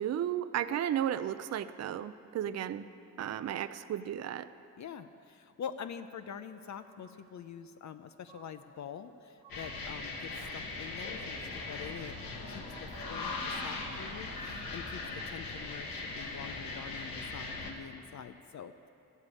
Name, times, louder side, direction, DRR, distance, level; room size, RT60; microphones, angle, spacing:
voice 1, 0.0-2.8 3.2-4.5, right 10 dB, 50° right, 12 dB, 0.5 m, -34 dB
voice 2, 4.8-12.2 12.5-12.6 13.0-15.0 15.3-18.9, left 7 dB, 55° left, 9 dB, 0.6 m, -45 dB
sound 1, 5.8-5.9 6.6-7.4 8.3-9.1 9.4-10.8 12.6-13.8, right 3 dB, 80° right, 1.6 m, -56 dB
sound 2, 9.5-17.7, left 3 dB, 85° left, 1.6 m, -39 dB
13.5 x 8.2 x 8.3 m, 2.7 s
cardioid pair, 105°, 34 cm